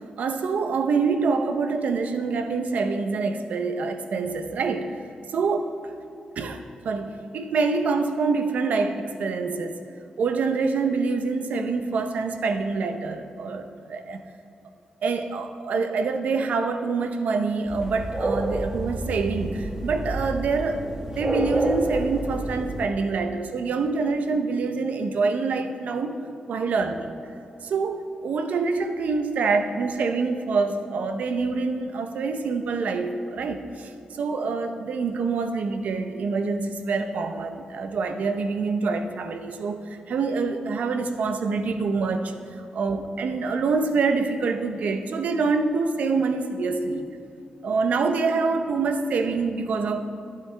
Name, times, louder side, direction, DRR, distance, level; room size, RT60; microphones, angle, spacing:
voice 1, 0.2-5.0 5.3-5.9 6.4-6.6 6.8-9.8 10.2-14.2 15.0-26.2 26.5-27.2 27.6-33.9 34.2-47.1 47.6-50.1, right 4 dB, 75° right, 7 dB, 0.8 m, -26 dB
fireworks with crowd recorded from appartment, 17.7-22.9, right 1 dB, 20° right, 1.3 m, -29 dB
12.0 x 12.0 x 3.4 m, 2.6 s
cardioid pair, 95°, 3 cm